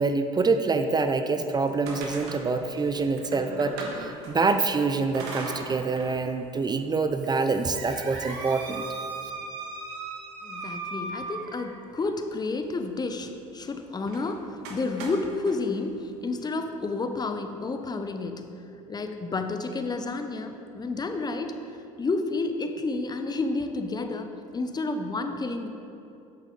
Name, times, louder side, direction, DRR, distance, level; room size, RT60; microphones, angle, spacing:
voice 1, 0.0-8.8, right 4 dB, 25° right, 8 dB, 0.5 m, -26 dB
sound 1, 1.5-4.6 5.1-6.1 6.5-6.6 7.2-11.9 14.0-14.3 14.6-15.6, right 3 dB, 70° right, 1.3 m, -38 dB
voice 2, 10.4-18.5 18.9-21.6 22.0-25.7, left 3 dB, 25° left, 7 dB, 0.7 m, -30 dB
8.6 x 6.3 x 3.9 m, 2.7 s
hypercardioid pair, 70°, 18 cm